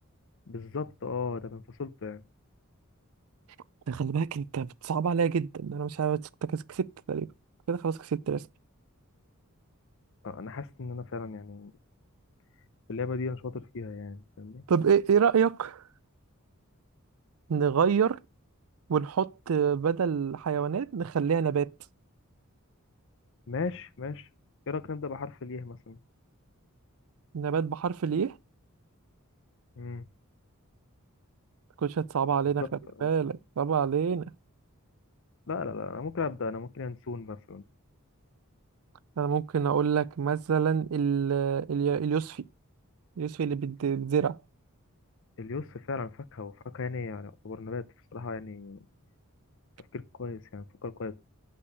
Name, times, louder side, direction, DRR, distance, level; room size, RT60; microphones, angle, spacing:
voice 1, 0.5-2.2 10.2-11.7 12.9-14.6 23.5-24.3 24.7-26.0 29.8-30.0 33.0-33.1 35.5-37.6 45.4-47.8 48.1-48.9 49.8-51.1, left 4 dB, 60° left, 0.7 m, -36 dB
voice 2, 3.9-7.3 7.7-8.4 14.7-15.8 17.5-18.2 18.9-21.7 27.3-28.3 31.8-32.6 33.0-34.3 39.2-42.4 43.2-44.4, right 7 dB, 75° right, 0.4 m, -27 dB
6.7 x 5.5 x 6.7 m
head